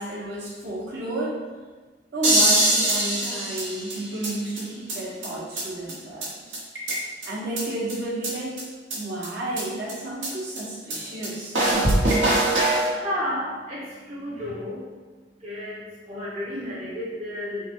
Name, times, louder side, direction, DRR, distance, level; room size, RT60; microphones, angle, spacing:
voice 1, 0.0-1.4 2.1-6.6 7.3-8.6 8.9-11.6, right 1 dB, 65° right, -6 dB, 1.1 m, -31 dB
sound 1, 2.2-4.3 4.6-4.7 4.9-5.0 5.2-5.3 5.6-5.7 5.9-6.0 6.2-6.3 6.5-7.3 7.6-7.7 7.9-8.0 8.2-8.3 8.6-8.7 8.9-9.0 9.2-9.3 9.6-9.7 9.9-10.0 10.2-10.3 10.6-10.7 10.9-11.0 11.2-11.3 11.5-12.9, right 1 dB, 80° right, 1.2 m, -22 dB
voice 2, 12.9-14.9 15.4-17.6, left 1 dB, 35° right, -8 dB, 0.8 m, -32 dB
3.8 x 2.3 x 4.4 m, 1.4 s
head